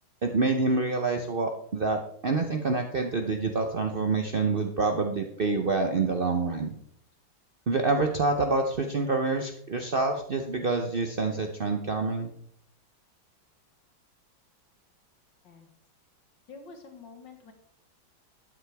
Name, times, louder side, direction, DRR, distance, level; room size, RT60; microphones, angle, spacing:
voice 1, 0.2-6.8 7.7-12.3, right 3 dB, 65° right, 4 dB, 0.5 m, -27 dB
voice 2, 16.5-17.5, left 4 dB, 65° left, 5 dB, 1.9 m, -47 dB
13.0 x 8.9 x 3.4 m, 0.66 s
omnidirectional pair, 2.2 m